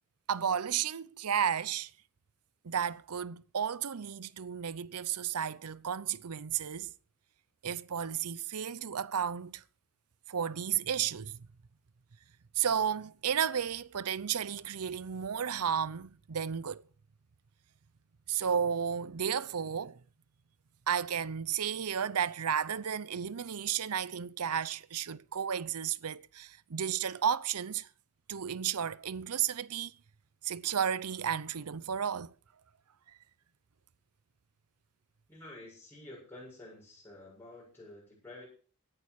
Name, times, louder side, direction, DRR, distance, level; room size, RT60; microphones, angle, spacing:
voice 1, 0.3-1.9 2.6-6.9 7.6-9.6 10.3-11.5 12.6-16.8 18.3-20.0 20.9-27.9 28.3-29.9 30.4-32.3, right 8 dB, 80° right, 0.7 m, -33 dB
voice 2, 35.3-38.4, left 2 dB, 10° left, 7.1 m, -50 dB
18.0 x 11.0 x 4.8 m
head